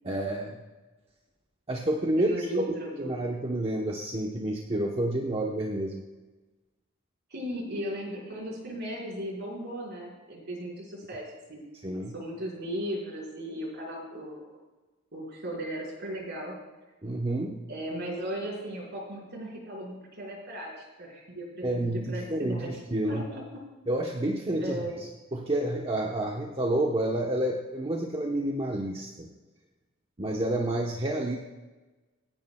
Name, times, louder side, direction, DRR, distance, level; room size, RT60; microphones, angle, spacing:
voice 1, 0.0-0.6 1.7-6.0 11.8-12.1 17.0-17.6 21.6-23.2 23.9-29.3 30.2-31.4, right 1 dB, 25° right, -1 dB, 1.1 m, -29 dB
voice 2, 2.2-3.2 7.3-11.7 12.1-14.5 15.1-16.5 17.7-22.7 23.1-23.6 24.6-24.9, right 1 dB, 55° right, -3 dB, 5.1 m, -36 dB
26.5 x 10.5 x 2.3 m, 1.2 s
head